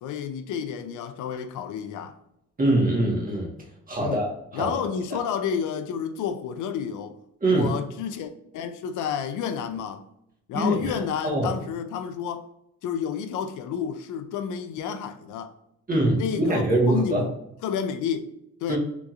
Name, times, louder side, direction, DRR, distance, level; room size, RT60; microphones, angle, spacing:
voice 1, 0.0-2.2 4.0-4.2 4.5-7.2 7.5-10.0 10.5-12.5 12.8-15.5 16.2-17.3 17.6-18.4 18.6-18.8, left 7 dB, 80° left, 0.5 m, -30 dB
voice 2, 2.6-3.5 3.9-4.8 7.4-7.7 10.5-10.9 11.2-11.6 15.9-17.3 18.7-18.8, right 1 dB, 30° right, 1.3 m, -23 dB
3.5 x 3.0 x 2.4 m
cardioid pair, 90°, 30 cm